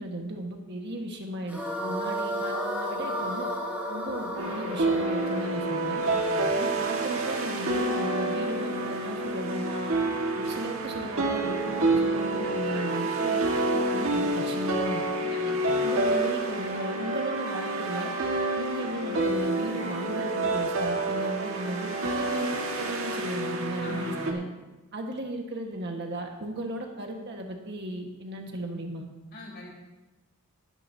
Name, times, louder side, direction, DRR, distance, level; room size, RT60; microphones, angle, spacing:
voice 1, 0.0-3.5 3.9-6.0 6.5-10.0 10.4-15.3 15.8-18.1 18.6-21.9 22.1-24.4 24.9-29.1, right 1 dB, 55° right, 2 dB, 1.5 m, -36 dB
sound 1, 1.5-6.7, equal, 10° right, 2.8 m, -33 dB
sound 2, 4.3-24.3, right 2 dB, 80° right, 1.6 m, -28 dB
voice 2, 6.0-6.6 15.3-15.9 23.8-24.4 29.3-29.7, left 1 dB, 50° left, -3 dB, 4.4 m, -41 dB
20.0 x 9.8 x 2.7 m, 1.1 s
head